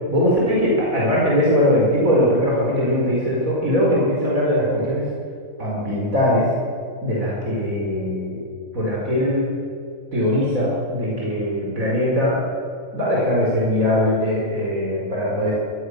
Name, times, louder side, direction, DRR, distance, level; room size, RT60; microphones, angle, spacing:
voice 1, 0.1-5.1 5.6-6.5 7.0-8.4 8.7-9.5 10.1-12.4 12.9-15.5, equal, 70° right, -4 dB, 5.2 m, -20 dB
25.0 x 19.5 x 6.7 m, 2.4 s
omnidirectional pair, 1.5 m